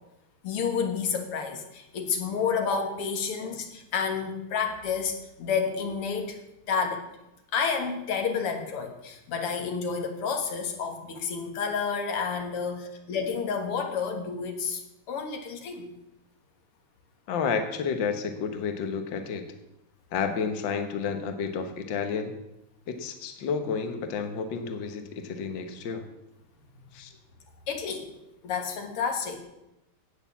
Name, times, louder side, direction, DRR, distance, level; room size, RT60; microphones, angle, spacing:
voice 1, 0.4-6.4 6.7-7.0 7.5-14.8 15.1-15.9 27.7-28.1 28.4-29.4, left 6 dB, 90° left, 5 dB, 2.5 m, -30 dB
voice 2, 17.3-19.4 20.1-22.3 22.9-26.0 26.9-27.1, left 6 dB, 60° left, 7 dB, 1.8 m, -31 dB
16.5 x 6.7 x 7.2 m, 0.90 s
omnidirectional pair, 2.4 m